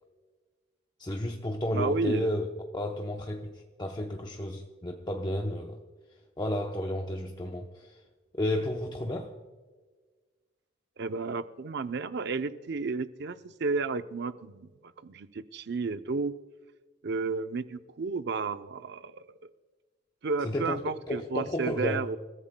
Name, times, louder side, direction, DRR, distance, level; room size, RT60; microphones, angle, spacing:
voice 1, 1.0-2.5 2.7-5.8 6.4-8.0 8.3-9.3 20.4-22.0, left 1 dB, 20° left, 0.8 m, -32 dB
voice 2, 1.7-2.3 11.0-14.7 15.0-16.4 17.0-19.4 20.2-22.2, right 4 dB, 60° right, 0.6 m, -32 dB
29.0 x 14.5 x 2.2 m
head